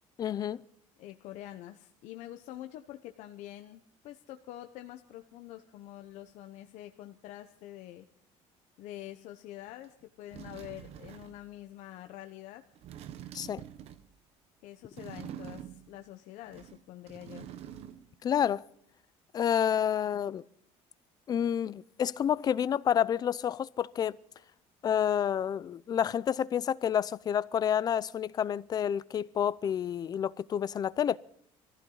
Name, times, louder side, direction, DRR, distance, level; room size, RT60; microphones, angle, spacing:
voice 1, 0.2-0.6 13.3-13.6 18.2-18.6 19.3-20.4 21.3-24.2 24.8-31.2, left 9 dB, 30° left, 0.5 m, -29 dB
voice 2, 1.0-8.0 8.8-12.6 14.6-17.5, left 13 dB, 70° left, 1.0 m, -46 dB
sound 1, 9.8-9.9 10.3-11.4 12.7-14.1 14.9-16.0 16.4-18.1 18.4-18.5, right 10 dB, 55° right, 1.0 m, -46 dB
23.0 x 15.0 x 3.9 m
cardioid pair, 150°, 13 cm